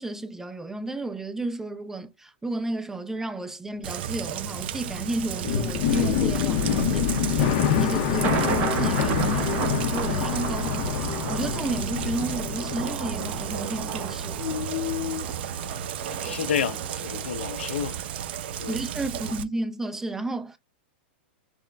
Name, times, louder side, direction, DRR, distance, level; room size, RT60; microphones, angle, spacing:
voice 1, 0.0-10.9 11.3-14.4 18.7-20.6, right 2 dB, 5° right, 0.5 m, -32 dB
Rain, 3.8-19.4, right 9 dB, 70° right, 0.6 m, -33 dB
Sailplane Landing, 4.0-14.1 14.4-15.2, left 8 dB, 50° left, 0.7 m, -27 dB
Thunder, 6.3-18.6, right 7 dB, 35° right, 1.0 m, -35 dB
voice 2, 16.1-18.1 18.6-18.8 19.3-19.4, left 8 dB, 90° left, 0.7 m, -30 dB
6.1 x 2.1 x 3.3 m
supercardioid pair, 140°, 6 cm